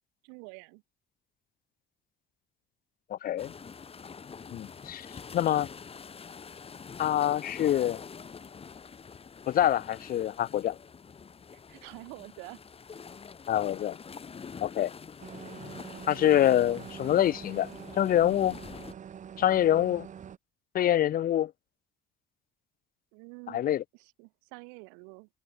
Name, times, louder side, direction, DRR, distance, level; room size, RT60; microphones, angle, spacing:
voice 1, 0.2-0.8 11.7-12.6 23.1-23.6 23.9-25.3, right 40 dB or more, 85° right, 7.8 m, -47 dB
voice 2, 3.1-3.5 4.5-5.1 5.3-5.7 7.0-8.0 9.5-10.8 13.5-14.0 14.6-14.9 16.1-17.7 18.0-18.6 19.4-20.1 20.7-21.5 23.5-23.8, left 11 dB, 55° left, 2.1 m, -25 dB
sound 1, 3.4-18.9, left 6 dB, 35° left, 6.3 m, -45 dB
sound 2, 15.2-20.4, right 8 dB, 45° right, 3.8 m, -45 dB
supercardioid pair, 80°, 17 cm